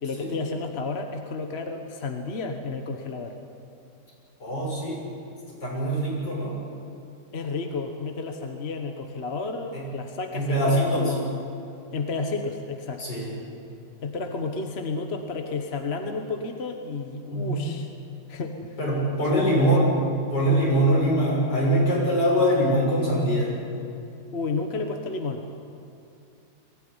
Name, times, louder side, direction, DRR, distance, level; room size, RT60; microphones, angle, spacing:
voice 1, 0.0-3.4 7.3-11.4 11.9-13.2 14.0-17.9 18.3-18.8 19.2-19.4 24.3-25.4, left 3 dB, 40° left, 4 dB, 1.3 m, -31 dB
voice 2, 4.4-5.0 5.6-6.5 9.7-9.8 10.3-11.1 13.0-13.3 17.3-17.6 18.8-19.9 20.3-23.5, right 1 dB, 65° left, -4 dB, 7.3 m, -23 dB
21.5 x 15.5 x 9.7 m, 2.6 s
omnidirectional pair, 2.0 m